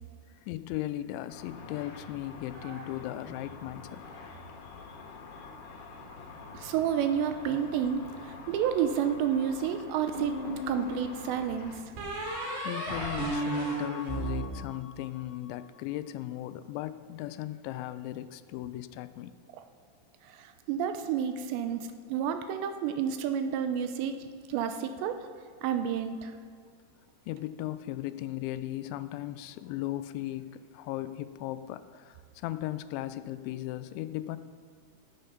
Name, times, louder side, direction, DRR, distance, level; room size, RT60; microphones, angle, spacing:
voice 1, 0.4-4.1 12.6-19.4 27.3-34.4, left 14 dB, 85° left, 13 dB, 2.8 m, -37 dB
Car / Traffic noise roadway noise / Engine, 1.3-11.8, left 3 dB, 70° left, 3.0 m, -46 dB
voice 2, 6.5-10.4 10.7-11.7 20.3-24.2 24.5-25.2 25.6-26.3, right 8 dB, 80° right, 8 dB, 2.7 m, -30 dB
sound 1, 10.1-11.0 12.0-15.3, right 1 dB, 65° right, 4.9 m, -34 dB
16.0 x 6.8 x 5.7 m, 2.1 s
omnidirectional pair, 5.3 m